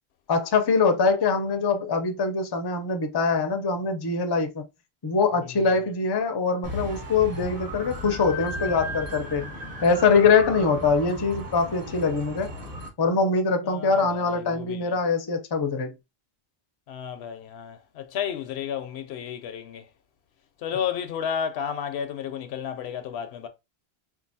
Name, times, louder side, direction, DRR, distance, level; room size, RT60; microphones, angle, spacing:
voice 1, 0.3-4.6 5.0-9.5 9.8-12.5 13.0-15.9, left 4 dB, 35° left, 0.4 m, -23 dB
sound 1, 6.6-12.9, equal, 35° right, 1.0 m, -36 dB
voice 2, 13.7-15.0 16.9-19.9 20.6-23.5, left 8 dB, 80° left, 0.8 m, -32 dB
4.4 x 2.5 x 2.6 m
omnidirectional pair, 1.1 m